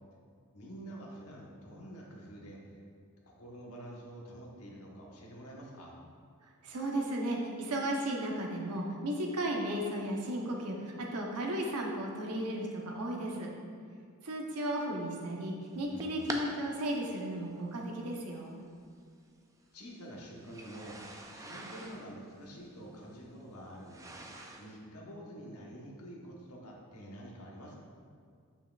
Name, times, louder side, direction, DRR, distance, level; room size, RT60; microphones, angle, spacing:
voice 1, 0.5-2.8 3.2-6.0 15.9-16.2 19.7-21.0 21.3-24.1 24.6-27.8, right 1 dB, 75° left, -2 dB, 1.1 m, -48 dB
voice 2, 6.4-13.5 14.2-18.5, right 1 dB, 85° right, 0 dB, 0.9 m, -35 dB
sound 1, 15.7-16.4 17.4-17.5 18.7-18.8 20.4-24.8, right 2 dB, 15° right, 0.4 m, -45 dB
7.1 x 5.7 x 2.4 m, 2.1 s
head